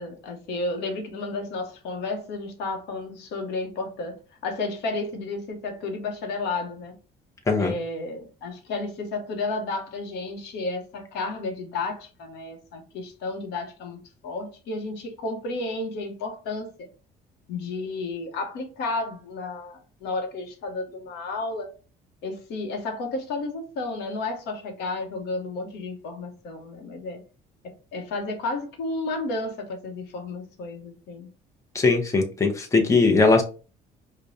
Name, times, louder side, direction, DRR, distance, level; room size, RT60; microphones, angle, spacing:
voice 1, 0.0-7.0 7.6-16.9 17.5-21.7 22.2-27.2 27.6-31.3, left 3 dB, 85° left, 1.0 m, -32 dB
voice 2, 31.7-33.4, left 3 dB, 20° left, 0.8 m, -20 dB
5.0 x 2.2 x 2.6 m
cardioid pair, 110°, 17 cm